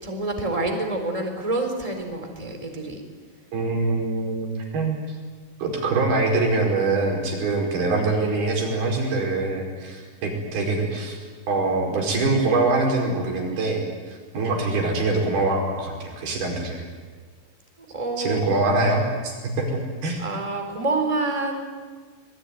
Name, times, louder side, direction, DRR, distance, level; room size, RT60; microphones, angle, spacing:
voice 1, 0.0-3.0 17.8-18.5 20.2-21.6, right 2 dB, 10° right, 3 dB, 3.9 m, -27 dB
voice 2, 3.5-5.0 5.6-11.2 11.5-16.9 18.2-20.2, right 3 dB, 70° right, 1 dB, 6.9 m, -24 dB
26.5 x 21.0 x 9.8 m, 1.5 s
omnidirectional pair, 4.5 m